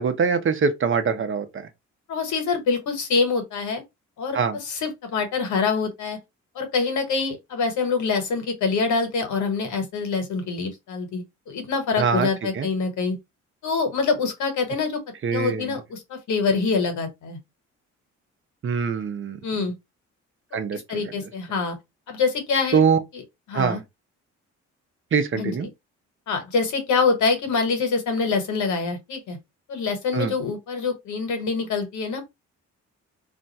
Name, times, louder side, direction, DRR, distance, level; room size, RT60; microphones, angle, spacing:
voice 1, 0.0-1.7 4.3-4.6 12.0-12.3 12.5-12.7 15.2-15.7 18.6-19.7 20.5-21.0 22.7-23.0 23.5-23.8 25.1-25.7 30.1-30.3, right 6 dB, 40° right, 0.7 m, -23 dB
voice 2, 2.1-3.8 4.2-6.2 6.5-13.2 13.6-15.0 15.3-17.4 19.4-19.7 20.5-21.7 22.1-22.8 23.5-23.8 25.3-25.5 26.3-29.4 29.7-32.2, left 4 dB, 75° left, 1.2 m, -25 dB
2.5 x 2.2 x 4.0 m
cardioid pair, 90°, 30 cm